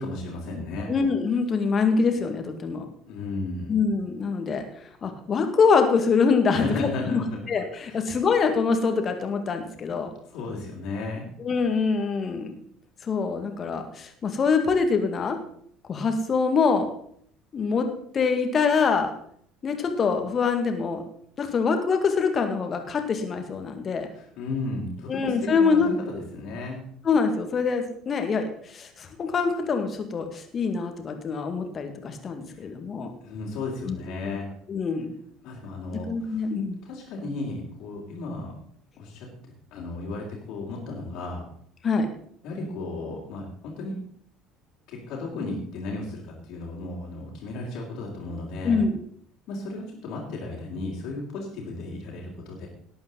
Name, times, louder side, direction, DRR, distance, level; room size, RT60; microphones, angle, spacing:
voice 1, 0.0-0.9 3.1-3.7 6.5-7.4 7.9-8.0 10.3-11.2 24.1-26.9 32.5-32.7 33.2-34.5 35.4-36.5 36.8-38.5 39.0-39.3 39.7-41.4 42.4-44.0 44.9-48.8 49.5-52.7, left 2 dB, 55° left, -5 dB, 3.3 m, -34 dB
voice 2, 0.9-2.9 3.7-4.6 5.0-7.2 7.5-10.1 11.4-12.5 13.0-15.4 15.9-16.9 17.5-17.9 18.1-19.1 19.6-21.0 21.4-24.1 25.1-25.9 27.0-33.1 33.8-34.0 34.2-34.4 34.7-35.1 35.9-36.8 41.8-42.1 48.6-49.0, left 5 dB, 35° left, 6 dB, 2.2 m, -24 dB
18.0 x 8.6 x 4.0 m, 0.63 s
figure-of-eight pair, 60°, 0 cm